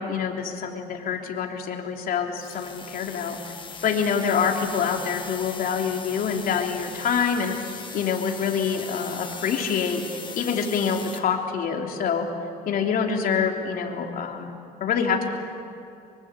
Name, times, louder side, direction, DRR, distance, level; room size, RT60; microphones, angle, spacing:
voice 1, 0.0-3.4 3.8-7.6 7.9-10.0 10.4-12.3 12.6-15.4, left 6 dB, 60° left, 2 dB, 3.3 m, -26 dB
sound 1, 2.4-11.2, left 5 dB, 30° left, 2.3 m, -39 dB
24.5 x 24.0 x 8.2 m, 2.5 s
cardioid pair, 110°, 17 cm